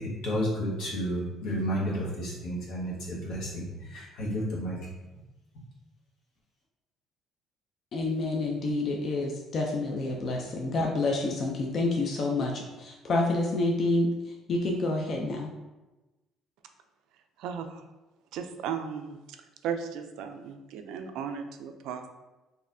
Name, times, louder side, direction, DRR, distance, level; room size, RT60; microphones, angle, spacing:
voice 1, 0.0-4.8, equal, 75° left, -5 dB, 1.3 m, -31 dB
voice 2, 7.9-15.5, left 2 dB, 40° left, 0 dB, 0.4 m, -28 dB
voice 3, 17.4-17.8 18.3-19.2 19.6-22.1, right 7 dB, 75° right, 7 dB, 0.3 m, -35 dB
4.0 x 2.6 x 2.6 m, 1.1 s
cardioid pair, 140°, 0 cm